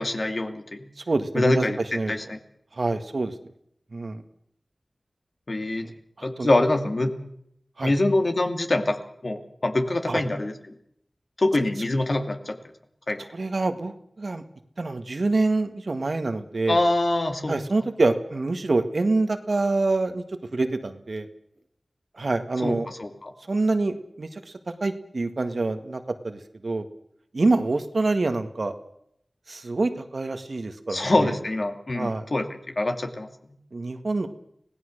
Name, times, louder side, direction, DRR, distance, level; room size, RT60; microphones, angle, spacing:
voice 1, 0.0-0.9 1.3-1.8 2.1-2.4 5.5-5.9 6.2-7.1 7.8-10.5 11.4-12.6 13.1-13.2 16.7-17.6 22.6-23.3 30.9-32.5 32.8-33.3, left 2 dB, 55° left, 5 dB, 2.6 m, -24 dB
voice 2, 1.0-1.7 1.9-2.1 2.7-3.3 3.9-4.2 6.4-6.5 7.8-7.9 10.1-10.2 13.2-14.4 14.8-16.8 17.5-20.2 20.5-21.3 22.2-22.9 23.5-24.4 24.8-26.9 27.3-28.7 29.5-31.3 32.0-32.2 33.7-34.3, right 3 dB, 65° right, 8 dB, 1.8 m, -26 dB
25.5 x 17.5 x 6.6 m, 0.72 s
wide cardioid pair, 50°, 0 cm